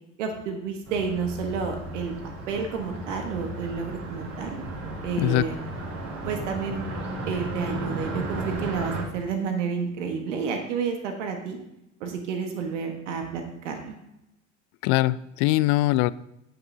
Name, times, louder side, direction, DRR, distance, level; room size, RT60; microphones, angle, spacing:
voice 1, 0.2-2.1 2.5-4.6 5.0-5.6 6.2-6.9 7.3-11.6 12.0-13.9, right 5 dB, 75° right, 4 dB, 1.4 m, -30 dB
Car passing by, 0.9-9.0, right 2 dB, 45° right, 2.7 m, -34 dB
voice 2, 14.8-16.1, left 18 dB, 50° left, 18 dB, 0.5 m, -22 dB
15.5 x 6.1 x 2.7 m, 0.86 s
hypercardioid pair, 70°, 37 cm